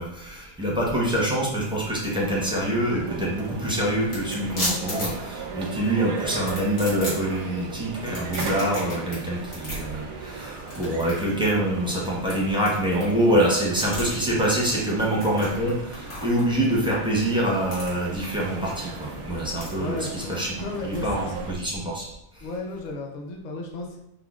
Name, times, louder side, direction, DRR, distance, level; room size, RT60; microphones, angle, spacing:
voice 1, 0.0-20.5 20.8-22.1 22.3-22.5, right 1 dB, 5° right, -5 dB, 0.3 m, -25 dB
sound 1, 2.3-21.5, right 4 dB, 85° right, 1.0 m, -37 dB
sound 2, 3.1-19.7, left 1 dB, 80° left, 1.7 m, -37 dB
voice 2, 19.8-20.3 20.6-21.3 21.6-21.7 22.4-24.0, left 2 dB, 55° left, 1 dB, 0.5 m, -34 dB
5.7 x 2.0 x 2.4 m, 0.80 s
omnidirectional pair, 1.4 m